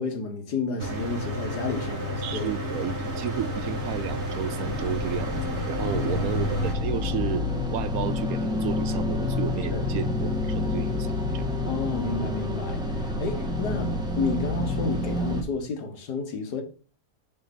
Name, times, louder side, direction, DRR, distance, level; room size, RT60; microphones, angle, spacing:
voice 1, 0.0-2.9 5.8-6.3 9.7-9.9 11.7-16.6, left 4 dB, 85° left, 1.9 m, -31 dB
Mechanical fan, 0.8-6.7, equal, 45° right, 1.8 m, -32 dB
sound 1, 2.2-15.4, left 2 dB, 5° right, 1.1 m, -29 dB
voice 2, 2.2-11.1 11.3-11.5, right 10 dB, 70° right, 1.0 m, -33 dB
6.5 x 4.5 x 5.8 m
omnidirectional pair, 1.7 m